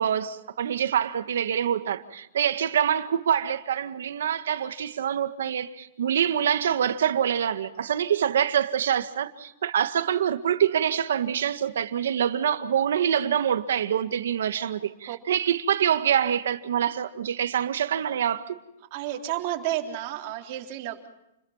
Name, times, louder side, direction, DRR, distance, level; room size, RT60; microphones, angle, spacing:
voice 1, 0.0-18.6, right 9 dB, 80° right, 1.9 m, -25 dB
voice 2, 18.9-21.1, right 13 dB, 40° right, 3.7 m, -31 dB
30.0 x 22.0 x 5.8 m
hypercardioid pair, 165°, 0 cm